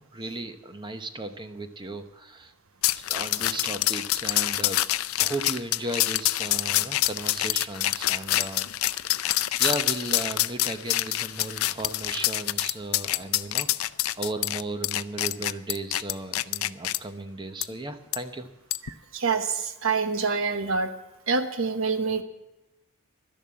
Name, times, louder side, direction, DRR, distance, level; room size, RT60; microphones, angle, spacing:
voice 1, 0.0-2.5 2.9-4.8 5.2-8.7 9.6-13.7 14.2-18.5, right 2 dB, 20° right, 8 dB, 0.9 m, -35 dB
sound 1, 2.8-17.0 17.6-17.7 18.1-18.2 18.7-18.9, left 15 dB, 70° left, 0.5 m, -26 dB
voice 2, 19.1-20.9 21.3-22.2, right 4 dB, 65° right, 8 dB, 1.1 m, -26 dB
12.0 x 11.0 x 7.4 m, 0.97 s
head